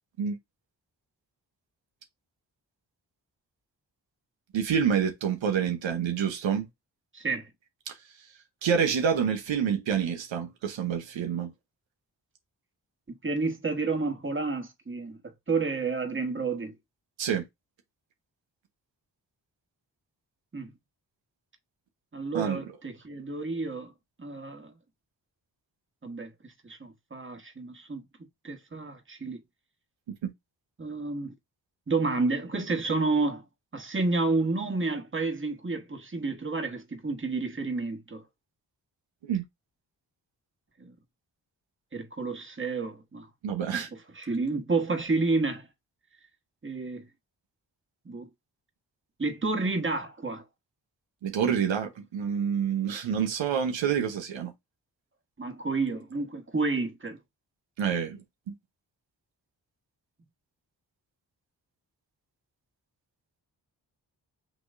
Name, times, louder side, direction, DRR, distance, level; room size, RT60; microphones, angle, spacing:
voice 1, 4.5-6.7 7.9-8.0 8.6-11.5 17.2-17.4 22.3-22.6 30.2-30.3 39.3-39.4 43.4-43.9 51.2-54.5 57.8-58.5, right 7 dB, 85° right, 1.0 m, -27 dB
voice 2, 7.1-7.5 13.1-15.2 15.5-16.7 20.5-20.7 22.1-23.9 24.2-24.7 26.0-28.0 28.4-29.4 30.8-31.3 31.9-33.4 33.7-38.2 40.8-40.9 41.9-43.3 43.7-45.7 46.6-47.1 48.0-48.3 49.2-50.4 55.4-57.2, right 3 dB, 25° right, 1.5 m, -30 dB
5.9 x 3.1 x 2.6 m
cardioid pair, 45°, 44 cm